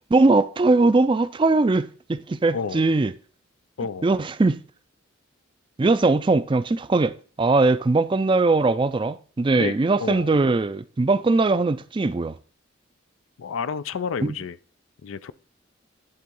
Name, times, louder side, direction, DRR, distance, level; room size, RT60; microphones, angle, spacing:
voice 1, 0.1-3.1 4.0-4.6 5.8-7.1 7.4-12.3 14.2-14.3, right 3 dB, 25° right, 0.4 m, -20 dB
voice 2, 2.5-2.8 3.8-4.1 9.6-10.3 13.4-14.6 15.0-15.3, left 6 dB, 90° left, 0.4 m, -30 dB
10.5 x 3.5 x 5.4 m
head